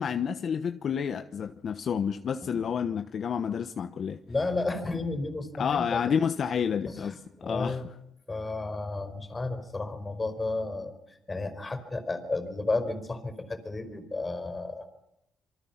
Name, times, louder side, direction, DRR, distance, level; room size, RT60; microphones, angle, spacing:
voice 1, 0.0-4.2 5.6-7.8, left 7 dB, 55° left, 8 dB, 1.1 m, -29 dB
voice 2, 4.3-6.0 6.9-7.8 8.3-14.9, left 3 dB, 25° left, 8 dB, 4.5 m, -32 dB
28.0 x 24.0 x 5.9 m, 0.84 s
cardioid pair, 90°, 0 cm